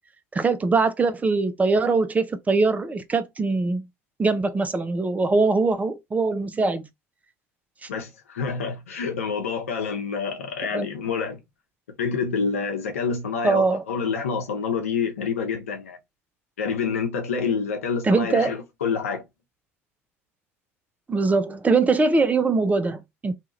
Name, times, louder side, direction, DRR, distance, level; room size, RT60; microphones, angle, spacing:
voice 1, 0.3-3.8 4.2-6.9 7.8-7.9 10.7-10.9 13.4-13.8 18.0-18.5 21.1-23.3, right 3 dB, 20° right, 0.6 m, -22 dB
voice 2, 7.9-11.4 12.0-16.0 16.6-19.2, left 5 dB, 80° left, 0.8 m, -27 dB
2.8 x 2.4 x 3.0 m
figure-of-eight pair, 65°, 7 cm